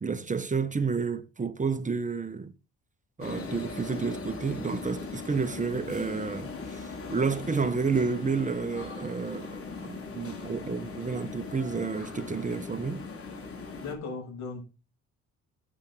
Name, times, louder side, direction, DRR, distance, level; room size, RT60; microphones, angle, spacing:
voice 1, 0.0-2.5 3.2-13.1, right 5 dB, 25° right, 1.2 m, -30 dB
sound 1, 3.2-13.9, left 4 dB, 45° left, 4.9 m, -39 dB
voice 2, 13.8-14.6, left 4 dB, 70° left, 7.7 m, -37 dB
10.5 x 9.0 x 3.9 m
cardioid pair, 90°, 30 cm